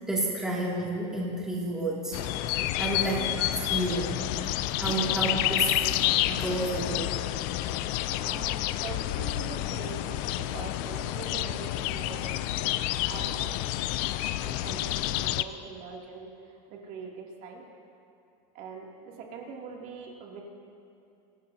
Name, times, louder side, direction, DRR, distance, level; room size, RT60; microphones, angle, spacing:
voice 1, 0.1-2.2 2.7-4.2 4.8-5.8 6.3-7.1, right 2 dB, 5° right, -6 dB, 2.7 m, -30 dB
sound 1, 2.1-15.4, left 14 dB, 50° left, 0.5 m, -29 dB
voice 2, 2.8-3.1 4.7-4.8 6.7-6.8 7.7-13.6 14.4-17.6 18.5-20.4, right 5 dB, 45° right, -1 dB, 2.9 m, -43 dB
25.5 x 16.5 x 2.9 m, 2.6 s
supercardioid pair, 155°, 19 cm